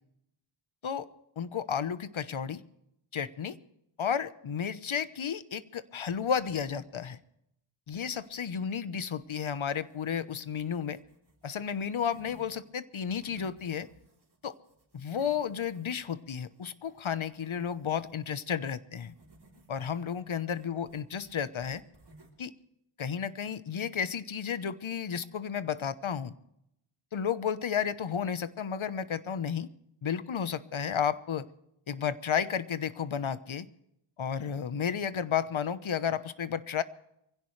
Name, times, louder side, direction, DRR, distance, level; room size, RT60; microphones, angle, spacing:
voice 1, 1.4-2.6 3.1-3.6 4.0-7.2 7.9-11.0 11.4-13.9 14.4-14.5 14.9-19.1 19.7-21.8 22.4-22.5 23.0-26.3 27.1-29.7 30.0-31.5 31.9-33.7 34.2-36.8, left 7 dB, 70° left, 14 dB, 1.1 m, -32 dB
sound 1, 8.1-8.9 9.2-12.6 12.9-18.3 19.0-22.5, right 1 dB, 50° right, 3.8 m, -60 dB
24.0 x 16.5 x 3.3 m, 0.77 s
wide cardioid pair, 75°, 50 cm